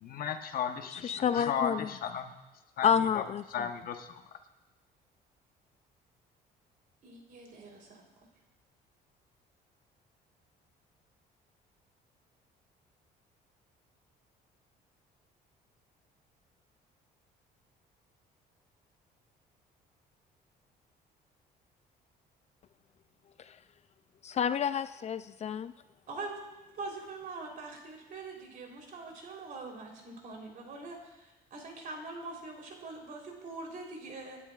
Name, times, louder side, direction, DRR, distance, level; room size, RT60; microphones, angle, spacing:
voice 1, 0.0-2.3 2.8-4.2, left 7 dB, 60° left, 6 dB, 1.1 m, -35 dB
voice 2, 1.0-1.8 2.8-3.4 24.2-25.7, left 8 dB, 40° left, 12 dB, 0.4 m, -29 dB
voice 3, 7.0-8.3 26.1-26.4 26.7-34.4, right 3 dB, 55° right, 0 dB, 3.7 m, -43 dB
27.5 x 11.0 x 2.4 m, 1.1 s
cardioid pair, 110°, 17 cm